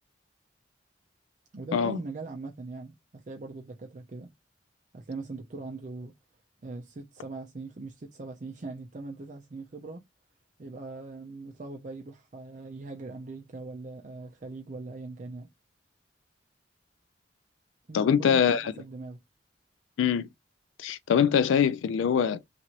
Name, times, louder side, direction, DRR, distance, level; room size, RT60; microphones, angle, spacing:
voice 1, 1.5-4.3 4.9-6.1 6.6-10.0 10.6-15.5 17.9-19.2, right 3 dB, 40° right, 0.5 m, -41 dB
voice 2, 17.9-18.7 20.0-20.3 20.8-22.4, left 7 dB, 80° left, 0.3 m, -23 dB
3.0 x 2.5 x 2.8 m
head